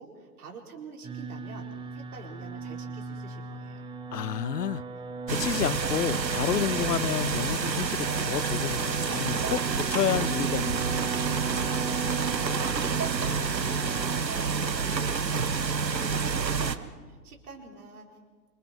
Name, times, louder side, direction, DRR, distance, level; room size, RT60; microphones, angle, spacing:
voice 1, 0.0-1.7 1.9-3.8 12.2-18.1, right 4 dB, 60° right, 4.7 m, -47 dB
sound 1, 1.0-14.2, right 6 dB, 10° right, 1.0 m, -37 dB
voice 2, 4.1-4.8 5.3-11.2, left 10 dB, 70° left, 0.7 m, -30 dB
sound 2, 5.3-16.8, right 5 dB, 90° right, 1.1 m, -28 dB
26.5 x 26.0 x 4.5 m
figure-of-eight pair, 115°, 49 cm